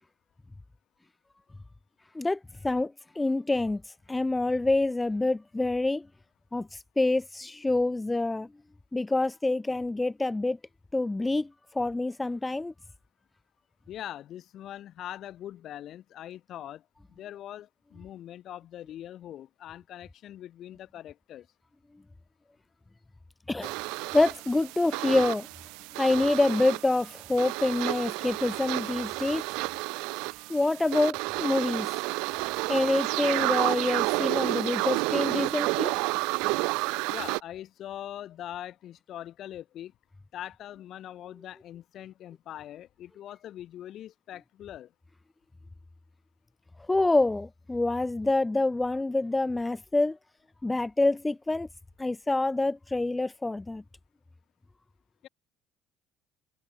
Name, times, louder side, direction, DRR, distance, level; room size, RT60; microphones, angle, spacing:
voice 1, 2.1-6.1 6.5-8.5 8.9-10.6 10.9-11.5 11.7-12.7 23.5-23.7 24.1-25.5 26.0-29.4 30.5-31.9 32.7-36.0 46.9-50.2 50.6-51.7 52.0-53.8, left 2 dB, 15° left, 0.4 m, -26 dB
voice 2, 13.9-16.8 17.1-21.5 37.1-39.9 40.3-44.9 55.2-55.3, left 12 dB, 50° left, 1.6 m, -42 dB
sound 1, 23.6-37.4, right 27 dB, 65° right, 0.4 m, -30 dB
figure-of-eight pair, 55°, 0 cm